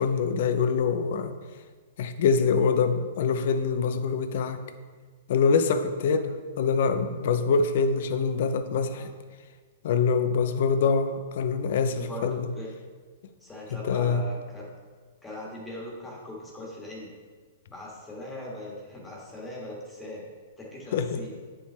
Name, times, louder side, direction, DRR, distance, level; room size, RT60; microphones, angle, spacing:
voice 1, 0.0-1.3 2.0-4.6 5.3-9.1 9.8-12.5 13.8-14.2 20.9-21.2, left 5 dB, 60° left, 9 dB, 0.6 m, -25 dB
voice 2, 12.0-12.7 13.4-14.7 15.2-17.1 17.7-20.3 20.6-21.3, left 1 dB, 10° left, -4 dB, 1.6 m, -40 dB
8.4 x 5.5 x 3.4 m, 1.5 s
hypercardioid pair, 145°, 0 cm